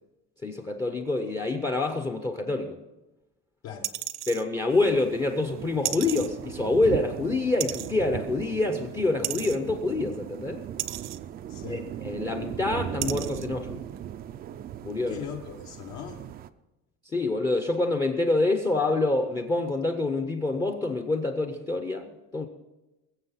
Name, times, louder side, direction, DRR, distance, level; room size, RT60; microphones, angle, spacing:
voice 1, 0.4-2.8 4.3-10.6 11.7-13.9 14.8-15.2 17.0-22.5, left 2 dB, 15° left, 0.6 m, -27 dB
sound 1, 3.8-4.4 5.8-6.3 7.6-7.9 9.2-9.6 10.8-11.2 12.2-12.3 13.0-13.5 14.0-14.1, right 15 dB, 60° right, 0.8 m, -33 dB
sound 2, 4.7-16.5, right 10 dB, 30° right, 0.4 m, -38 dB
voice 2, 11.5-11.9 15.1-16.2, left 8 dB, 65° left, 1.3 m, -39 dB
21.5 x 7.6 x 5.5 m
cardioid pair, 170°, 30 cm